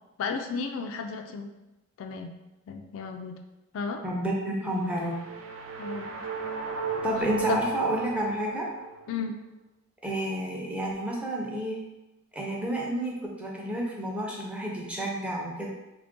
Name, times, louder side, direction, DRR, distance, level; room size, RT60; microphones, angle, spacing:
voice 1, 0.2-1.5 2.0-2.3 2.7-3.4 3.7-4.0 5.8-6.3 7.5-7.6 9.1-9.4, left 5 dB, 65° left, 6 dB, 0.3 m, -33 dB
voice 2, 4.0-5.2 7.0-8.7 10.0-11.8 12.3-15.7, equal, 5° right, -3 dB, 0.5 m, -30 dB
sound 1, 4.7-9.1, right 5 dB, 70° right, 0.4 m, -35 dB
3.1 x 2.5 x 3.6 m, 1.0 s
head